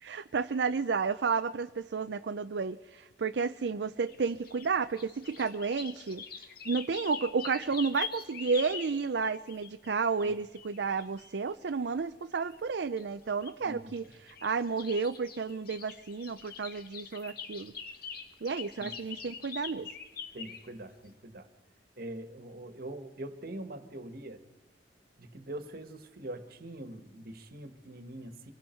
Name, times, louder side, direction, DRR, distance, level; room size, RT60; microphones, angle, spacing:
voice 1, 0.0-6.2 6.7-17.7 18.4-19.9, right 5 dB, 75° right, 9 dB, 0.5 m, -32 dB
sound 1, 4.1-11.3 12.3-12.6 12.8-13.5 14.0-20.7, left 6 dB, 60° left, 1.7 m, -44 dB
voice 2, 13.6-14.1 18.8-19.0 20.3-21.5 22.0-24.4 25.2-28.5, right 1 dB, 60° right, 8 dB, 1.6 m, -43 dB
25.5 x 22.0 x 4.5 m, 1.2 s
head